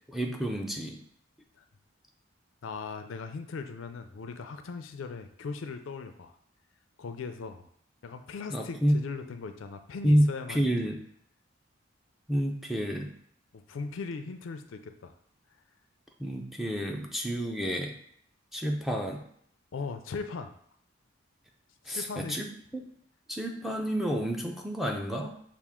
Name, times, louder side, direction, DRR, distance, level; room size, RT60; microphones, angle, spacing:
voice 1, 0.1-1.0 8.5-9.0 10.0-11.0 12.3-13.1 16.2-17.9 18.5-19.2 21.9-22.8 23.3-25.4, equal, ahead, 1 dB, 0.4 m, -29 dB
voice 2, 2.6-6.3 7.0-7.7 8.0-10.7 13.5-15.1 19.7-20.5 21.9-22.4, left 4 dB, 70° left, 8 dB, 0.4 m, -39 dB
5.9 x 2.5 x 3.5 m, 0.64 s
head